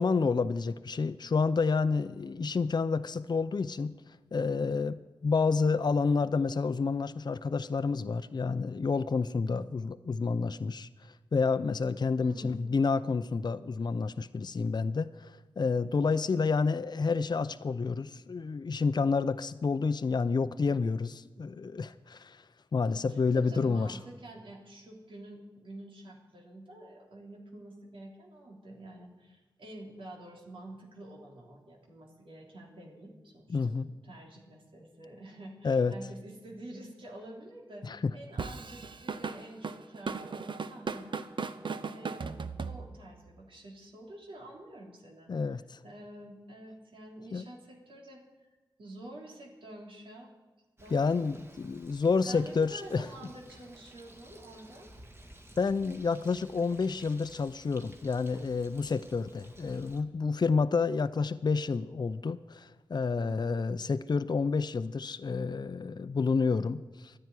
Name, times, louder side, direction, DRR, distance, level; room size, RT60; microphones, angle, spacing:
voice 1, 0.0-3.9 4.3-10.9 11.3-22.4 22.7-24.0 33.5-33.9 35.6-35.9 37.8-38.1 45.3-45.8 47.3-47.4 50.9-53.1 55.6-67.1, left 4 dB, 55° left, 11 dB, 0.5 m, -29 dB
voice 2, 12.2-12.6 23.1-41.2 41.8-42.4 42.6-48.5 48.8-50.3 50.8-51.0 52.2-54.9 63.1-63.5, right 1 dB, 85° right, -1 dB, 3.1 m, -48 dB
Drum kit / Drum, 38.4-43.2, right 5 dB, 70° right, 0.8 m, -37 dB
Bird, 50.8-60.0, right 1 dB, 30° right, 2.2 m, -54 dB
12.5 x 10.0 x 9.7 m, 1.2 s
cardioid pair, 40°, 9 cm